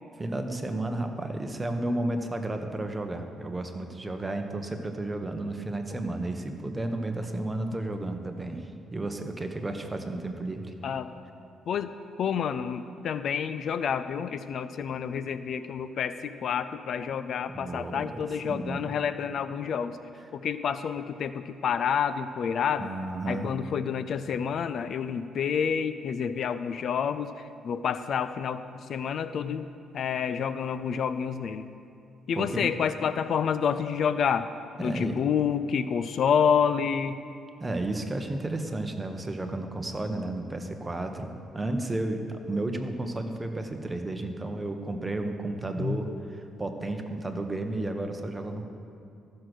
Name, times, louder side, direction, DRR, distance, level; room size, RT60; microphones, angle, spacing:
voice 1, 0.2-10.7 17.5-18.9 20.1-20.3 22.8-23.6 32.3-32.7 34.8-35.2 37.6-48.7, right 2 dB, 20° right, 5 dB, 1.1 m, -33 dB
voice 2, 12.2-16.2 16.4-19.9 20.4-22.9 23.3-27.3 27.6-28.6 28.9-29.7 29.9-31.6 32.3-34.5 34.8-37.2 45.8-45.9, left 7 dB, 65° left, 12 dB, 0.4 m, -28 dB
14.5 x 6.5 x 6.2 m, 2.6 s
cardioid pair, 90°, 0 cm